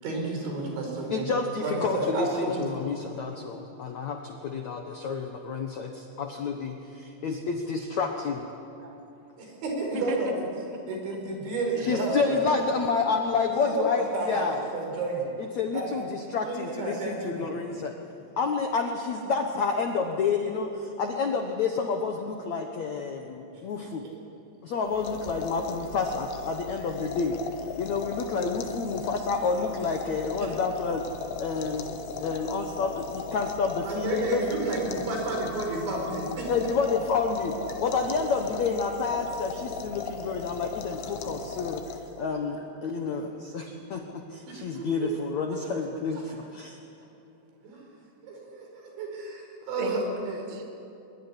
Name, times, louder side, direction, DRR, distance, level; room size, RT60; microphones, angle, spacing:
voice 1, 0.0-1.3 1.6-2.8 9.4-10.3 10.9-12.5 13.6-14.5 14.7-15.3 15.7-15.9 16.5-17.5 23.5-23.6 33.8-36.5 44.5-45.1 45.5-45.8 46.1-46.2 47.6-47.8 48.2-50.1, right 2 dB, 80° right, 1 dB, 7.6 m, -31 dB
voice 2, 1.1-8.5 11.8-14.6 15.4-17.9 18.4-24.0 24.6-27.4 27.8-31.1 31.4-31.9 32.2-34.4 36.5-46.8, left 5 dB, 70° left, 3 dB, 1.7 m, -29 dB
voice 3, 8.8-9.2 9.9-10.3 10.7-11.2 11.7-12.0 30.4-30.6 49.7-50.7, right 1 dB, 15° right, 2 dB, 1.4 m, -37 dB
sound 1, 24.9-42.3, left 5 dB, 90° left, 3.8 m, -37 dB
23.5 x 22.0 x 9.9 m, 2.8 s
omnidirectional pair, 5.2 m